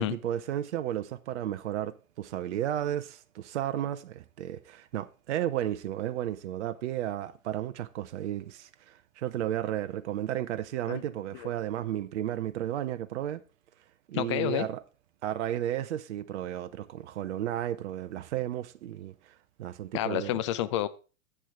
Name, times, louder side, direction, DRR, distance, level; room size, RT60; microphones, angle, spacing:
voice 1, 0.0-13.4 14.1-14.8 15.2-20.4, right 12 dB, 55° right, 0.7 m, -33 dB
voice 2, 14.1-14.7 19.9-20.9, left 13 dB, 25° left, 0.4 m, -29 dB
10.0 x 8.1 x 3.5 m
figure-of-eight pair, 105°, 42 cm